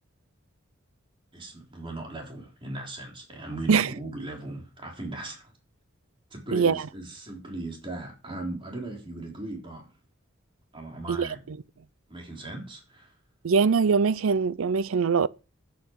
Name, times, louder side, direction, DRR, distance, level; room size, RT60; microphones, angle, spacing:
voice 1, 1.3-5.5 6.3-9.8 10.7-11.4 12.1-13.1, right 2 dB, 25° right, 3.7 m, -38 dB
voice 2, 6.5-6.8 11.1-11.6 13.4-15.3, right 5 dB, 80° right, 0.5 m, -23 dB
13.0 x 9.4 x 4.7 m
head